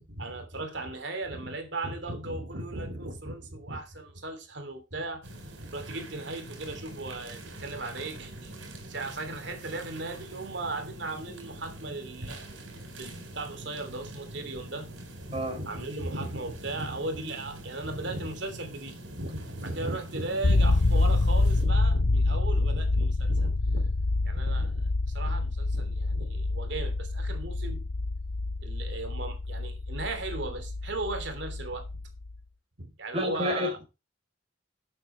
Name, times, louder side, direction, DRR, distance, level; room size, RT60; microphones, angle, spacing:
voice 1, 0.0-5.2 5.6-8.6 8.9-12.5 13.0-14.9 15.2-23.9 24.2-27.8 28.6-31.9 32.8-33.8, right 2 dB, 60° right, 3.0 m, -37 dB
sound 1, 5.2-21.7, right 1 dB, 80° right, 4.4 m, -44 dB
sound 2, 20.4-32.4, left 2 dB, 85° left, 1.0 m, -27 dB
voice 2, 33.1-33.8, left 1 dB, 30° right, 4.0 m, -29 dB
12.0 x 8.7 x 3.3 m
head